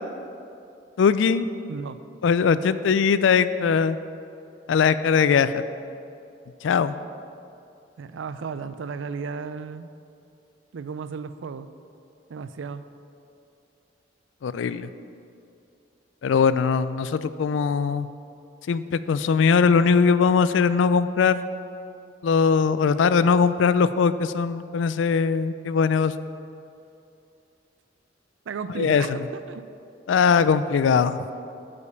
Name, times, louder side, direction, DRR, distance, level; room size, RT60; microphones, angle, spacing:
voice 1, 1.0-1.5 2.2-4.0 4.7-5.5 6.6-6.9 14.4-14.9 16.2-18.1 18.7-21.4 22.2-26.1 28.8-29.3 30.1-31.3, left 6 dB, 85° left, 14 dB, 0.3 m, -20 dB
voice 2, 8.0-9.9 10.7-11.7 12.3-12.8 28.5-29.6, right 5 dB, 90° right, 13 dB, 0.4 m, -34 dB
8.3 x 5.2 x 7.0 m, 2.7 s
head